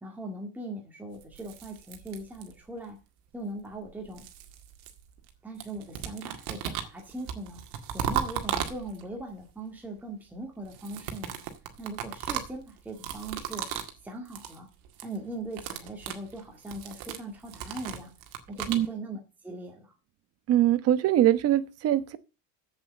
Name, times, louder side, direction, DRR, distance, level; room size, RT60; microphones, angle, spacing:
voice 1, 0.0-3.0 3.3-4.3 5.4-7.7 7.9-11.4 11.8-13.7 14.0-14.7 15.0-18.2 18.5-19.9, right 1 dB, 5° right, 1.9 m, -40 dB
sound 1, 1.2-2.8 3.7-5.3 5.6-9.2 10.6-14.0 14.3-14.6 14.9-15.2 15.5-18.9, right 9 dB, 60° right, 2.0 m, -36 dB
voice 2, 20.5-22.2, right 12 dB, 40° right, 1.1 m, -22 dB
7.9 x 7.7 x 7.6 m
cardioid pair, 170°, 39 cm